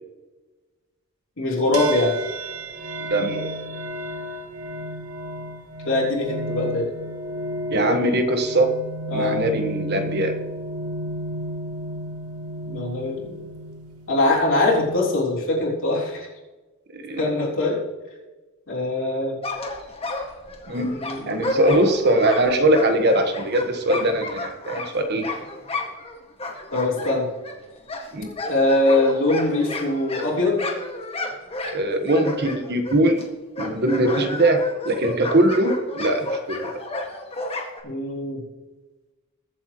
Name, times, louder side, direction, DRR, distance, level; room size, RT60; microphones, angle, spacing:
voice 1, 1.4-2.1 5.8-6.9 9.1-9.4 12.6-13.4 14.1-16.3 17.2-17.8 18.7-19.4 20.9-21.7 26.7-27.3 28.4-30.6 37.8-38.4, left 2 dB, 60° left, -3 dB, 3.7 m, -22 dB
sound 1, 1.7-15.3, right 1 dB, 75° right, 1.2 m, -33 dB
voice 2, 3.1-3.4 7.7-8.7 9.1-10.4 16.9-17.3 20.7-20.9 21.3-25.3 28.1-28.3 31.7-33.2 33.6-36.6, right 1 dB, 50° right, 6 dB, 1.3 m, -21 dB
sound 2, 19.4-26.1 26.4-33.3 33.6-37.8, left 2 dB, 25° left, 1.8 m, -32 dB
22.0 x 7.8 x 3.0 m, 1.2 s
head